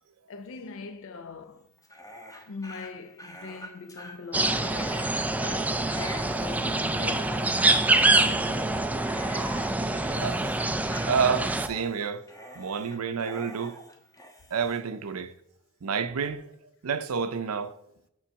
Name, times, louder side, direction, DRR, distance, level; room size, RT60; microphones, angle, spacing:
voice 1, 0.3-1.7 2.5-9.3 9.9-10.5 11.8-12.1, left 5 dB, 65° left, 0.5 m, -42 dB
Dog, 1.8-14.8, equal, 15° left, 1.1 m, -44 dB
sound 1, 4.3-11.7, right 2 dB, 5° right, 0.3 m, -25 dB
voice 2, 11.1-12.2 12.5-13.8 14.5-15.3 15.8-16.4 16.8-17.7, right 6 dB, 90° right, 0.6 m, -29 dB
7.5 x 3.8 x 6.3 m
head